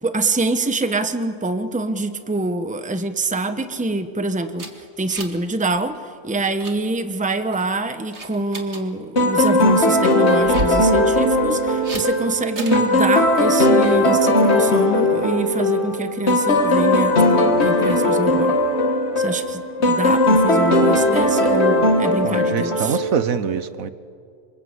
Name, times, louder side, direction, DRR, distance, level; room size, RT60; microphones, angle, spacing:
voice 1, 0.0-4.7 5.0-18.6 19.2-23.0, right 2 dB, 5° right, 9 dB, 0.9 m, -25 dB
sound 1, 4.6-5.5 5.7-6.0 6.3-6.8 7.3-7.7 8.1-8.8 10.4-10.8 11.8-12.1 12.6-12.9, right 2 dB, 50° right, 2.4 m, -30 dB
sound 2, 9.2-23.4, left 1 dB, 50° left, 2.4 m, -18 dB
voice 2, 22.2-23.9, right 7 dB, 75° right, 13 dB, 1.4 m, -24 dB
27.5 x 26.0 x 8.1 m, 2.3 s
omnidirectional pair, 1.5 m